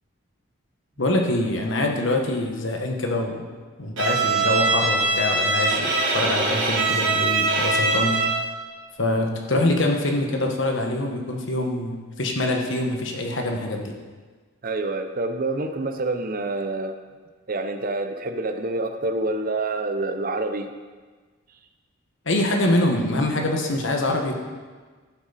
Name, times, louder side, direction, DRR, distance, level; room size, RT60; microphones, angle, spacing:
voice 1, 1.0-3.4 3.8-8.2 9.0-13.9 22.2-24.4, left 1 dB, 60° left, 2 dB, 1.3 m, -24 dB
Bowed string instrument, 4.0-8.5, right 3 dB, 65° right, 1.6 m, -22 dB
voice 2, 14.6-17.0 17.5-20.7, right 2 dB, 45° right, 7 dB, 0.6 m, -27 dB
15.0 x 6.1 x 4.1 m, 1.4 s
head